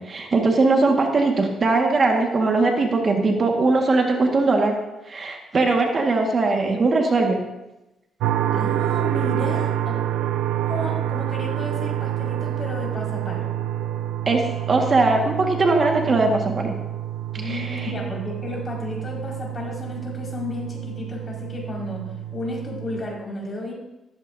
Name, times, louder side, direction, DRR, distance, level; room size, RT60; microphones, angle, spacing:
voice 1, 0.0-4.7 5.1-7.4 14.2-16.7 17.4-17.9, right 3 dB, 40° right, 2 dB, 1.7 m, -20 dB
sound 1, 8.2-23.0, right 12 dB, 90° right, 0.6 m, -27 dB
voice 2, 8.5-9.9 10.7-13.5 17.3-22.0 22.3-23.7, left 2 dB, 30° left, -2 dB, 5.3 m, -33 dB
15.0 x 14.5 x 2.7 m, 0.98 s
cardioid pair, 90°, 0 cm